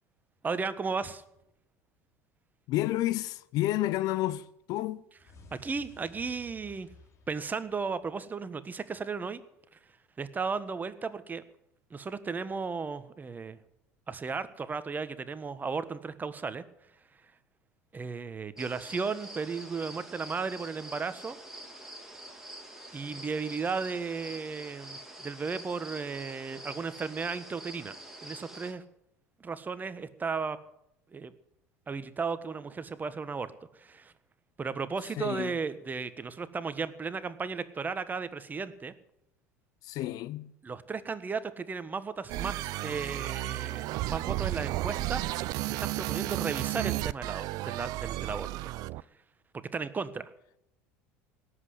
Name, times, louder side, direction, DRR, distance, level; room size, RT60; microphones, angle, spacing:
voice 1, 0.4-1.2 5.5-6.9 7.3-9.4 10.2-11.4 11.9-13.6 14.1-16.6 17.9-21.4 22.9-27.9 28.2-28.8 29.4-30.6 31.1-31.3 31.9-34.1 34.6-38.9 40.6-45.2 45.8-48.5 49.7-50.3, right 5 dB, 25° right, 1.4 m, -35 dB
voice 2, 2.7-5.0 35.2-35.5 39.8-40.5, left 15 dB, 55° left, 0.8 m, -30 dB
sound 1, 5.2-8.3, left 3 dB, 40° left, 3.3 m, -55 dB
sound 2, 18.6-28.7, right 1 dB, 5° right, 4.0 m, -46 dB
sound 3, 42.3-49.0, right 17 dB, 55° right, 0.6 m, -33 dB
17.5 x 8.1 x 9.6 m
hypercardioid pair, 80°, 8 cm